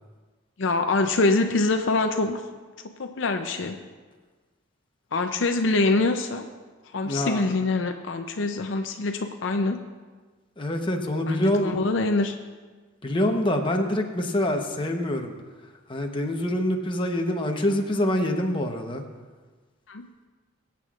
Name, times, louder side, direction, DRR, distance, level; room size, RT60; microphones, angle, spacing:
voice 1, 0.6-2.4 2.8-3.8 5.1-6.5 6.9-9.8 11.3-12.4 19.9-20.1, left 3 dB, 65° left, 6 dB, 0.6 m, -24 dB
voice 2, 7.0-7.4 10.6-11.8 13.0-15.3 15.9-19.0, left 1 dB, 25° left, 2 dB, 1.0 m, -25 dB
23.0 x 8.4 x 2.5 m, 1.4 s
head